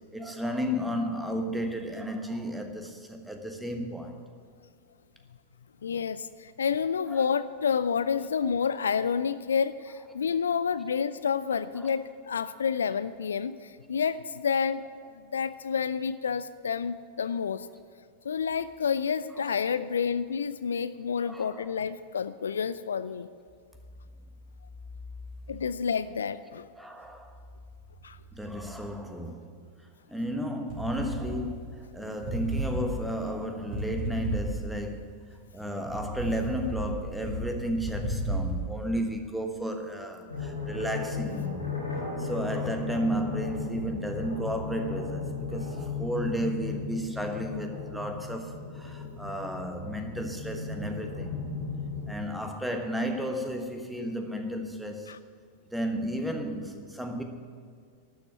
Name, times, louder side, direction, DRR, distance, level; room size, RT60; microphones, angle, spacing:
voice 1, 0.1-4.2 7.1-7.3 11.8-11.9 19.4-19.5 21.2-21.8 26.8-27.4 28.3-29.5 30.1-35.1 35.5-41.7 42.2-51.5 52.1-55.1 55.7-57.2, equal, 5° right, 4 dB, 1.3 m, -33 dB
voice 2, 5.8-14.8 15.3-17.7 18.2-23.3 25.5-26.7 28.0-28.2 55.1-55.2, left 6 dB, 70° left, 14 dB, 0.3 m, -29 dB
sound 1, 30.7-31.9 32.2-34.9 35.3-38.6, right 1 dB, 45° right, 4.2 m, -33 dB
sound 2, 40.3-52.1, left 4 dB, 85° left, 2.9 m, -36 dB
12.0 x 7.1 x 9.1 m, 2.1 s
figure-of-eight pair, 90°, 0 cm